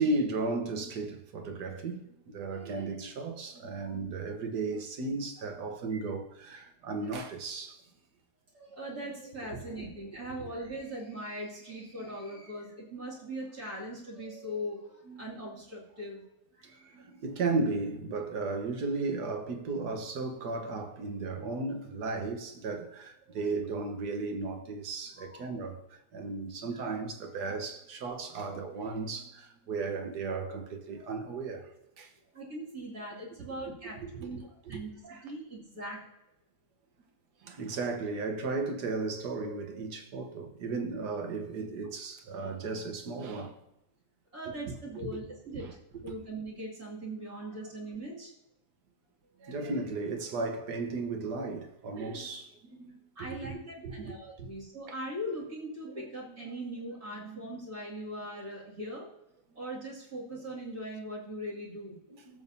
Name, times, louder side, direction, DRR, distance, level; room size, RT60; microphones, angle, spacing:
voice 1, 0.0-2.0 2.3-7.8 9.5-9.6 15.1-15.2 16.9-31.7 32.0-32.1 34.1-34.3 34.7-35.2 37.4-43.5 44.5-44.6 45.0-45.2 45.5-45.7 49.4-53.5 53.8-54.1 54.4-54.5 62.1-62.4, right 3 dB, 75° right, 1.7 m, -35 dB
voice 2, 8.5-16.2 16.6-16.9 23.4-23.5 25.2-25.5 26.8-26.9 32.3-36.0 44.3-45.7 46.0-48.3 53.1-59.1 59.6-62.0, right 1 dB, 60° right, 3.0 m, -40 dB
18.0 x 7.3 x 2.7 m
omnidirectional pair, 1.8 m